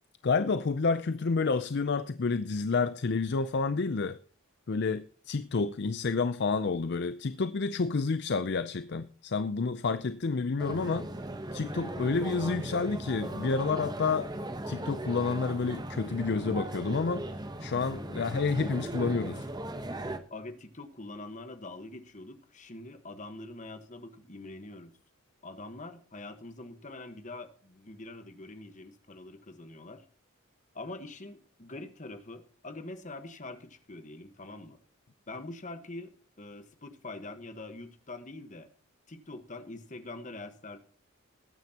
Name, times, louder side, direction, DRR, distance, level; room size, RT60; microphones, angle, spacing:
voice 1, 0.2-4.2 4.7-11.1 11.5-14.3 14.7-17.3 17.6-19.4, left 4 dB, 50° left, 0.5 m, -29 dB
sound 1, 10.6-20.2, right 1 dB, 20° right, 0.9 m, -38 dB
voice 2, 20.3-24.9 25.4-30.0 30.7-34.8 35.3-36.1 36.4-38.7 39.1-40.8, left 2 dB, 35° left, 1.3 m, -44 dB
20.0 x 9.4 x 2.9 m
head